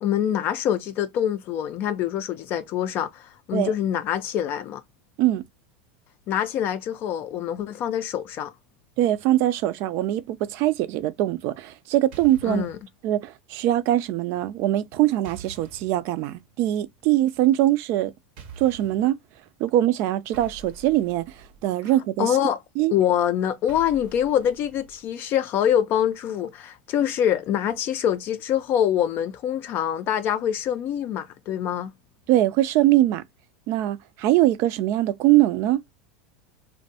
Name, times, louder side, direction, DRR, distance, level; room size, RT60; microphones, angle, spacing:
voice 1, 0.0-4.8 6.3-8.5 12.4-12.8 22.2-22.6 22.9-31.9, left 10 dB, 45° left, 0.3 m, -25 dB
voice 2, 9.0-12.6 13.0-18.1 18.6-19.2 19.6-22.4 22.8-22.9 32.3-33.2 33.7-35.8, right 14 dB, 55° right, 0.3 m, -22 dB
sound 1, 12.1-12.8 15.2-16.0 18.4-19.1 20.3-21.7 23.7-25.1, right 5 dB, 70° right, 0.7 m, -45 dB
2.5 x 2.1 x 2.6 m
supercardioid pair, 115°, 5 cm